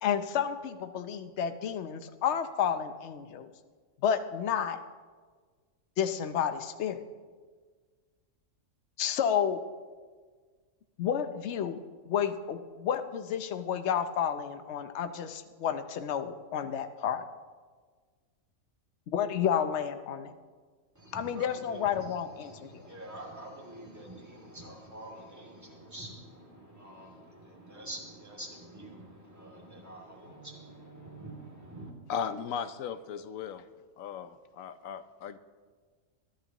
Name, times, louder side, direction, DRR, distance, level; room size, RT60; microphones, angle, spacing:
voice 1, 0.0-3.5 4.0-4.8 6.0-7.0 9.0-9.6 11.0-11.8 12.1-17.2 19.1-20.3 21.1-22.8, left 8 dB, 65° left, 10 dB, 1.0 m, -31 dB
voice 2, 20.9-31.9, right 1 dB, 15° right, -2 dB, 2.6 m, -46 dB
voice 3, 32.1-33.6 34.0-35.4, left 7 dB, 90° left, 12 dB, 1.1 m, -37 dB
22.0 x 11.5 x 3.0 m, 1.5 s
omnidirectional pair, 1.3 m